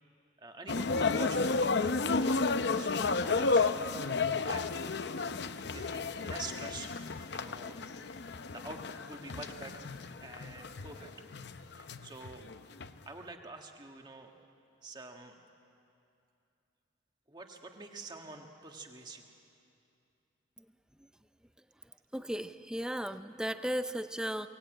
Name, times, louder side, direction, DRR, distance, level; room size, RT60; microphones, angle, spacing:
voice 1, 0.4-1.7 2.1-4.0 4.5-4.9 5.7-7.0 7.3-11.1 11.8-12.5 13.0-14.3 14.8-15.4 17.3-19.3, right 3 dB, 25° right, 3 dB, 1.6 m, -47 dB
sound 1, 0.7-12.9, left 4 dB, 60° left, 0.7 m, -32 dB
voice 2, 22.1-24.5, equal, 5° right, 11 dB, 0.5 m, -35 dB
23.5 x 19.0 x 9.0 m, 2.6 s
head